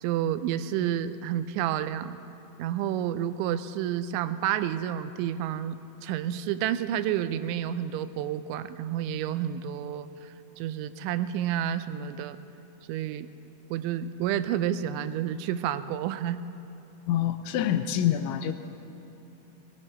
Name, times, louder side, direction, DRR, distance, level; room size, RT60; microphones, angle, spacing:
voice 1, 0.0-2.2 2.6-12.4 12.9-13.3 13.7-16.4, right 10 dB, 90° right, 13 dB, 3.0 m, -30 dB
voice 2, 17.1-18.5, left 10 dB, 85° left, 8 dB, 2.9 m, -26 dB
18.0 x 17.5 x 4.3 m, 2.9 s
omnidirectional pair, 5.2 m